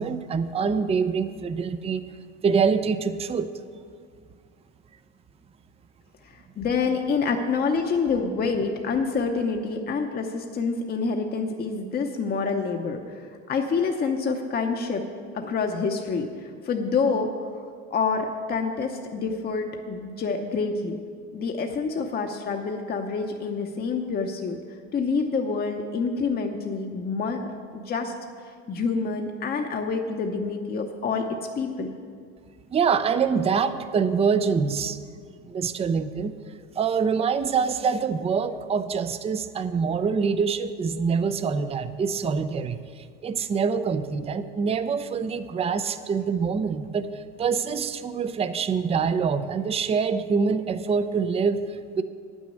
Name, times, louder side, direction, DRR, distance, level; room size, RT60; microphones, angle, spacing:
voice 1, 0.0-2.1 2.4-3.5 32.7-35.0 35.4-36.3 36.8-52.0, right 5 dB, 20° right, 11 dB, 0.4 m, -25 dB
voice 2, 6.2-15.0 15.3-17.6 17.9-21.0 21.3-27.4 27.7-28.1 28.7-31.2 31.6-31.9, left 4 dB, 30° left, 3 dB, 0.8 m, -27 dB
9.0 x 6.2 x 8.3 m, 2.1 s
supercardioid pair, 105°, 31 cm